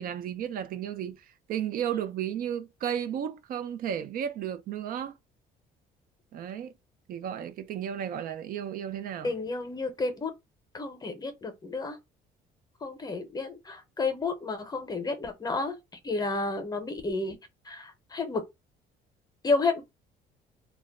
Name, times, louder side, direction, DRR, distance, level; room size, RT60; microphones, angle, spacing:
voice 1, 0.0-5.2 6.3-6.7 7.1-9.3, right 9 dB, 60° right, 0.4 m, -33 dB
voice 2, 9.2-10.3 10.7-12.0 12.8-15.8 16.0-17.4 17.7-18.4 19.4-19.8, left 3 dB, 25° left, 0.7 m, -31 dB
2.2 x 2.0 x 3.5 m
cardioid pair, 110°, 17 cm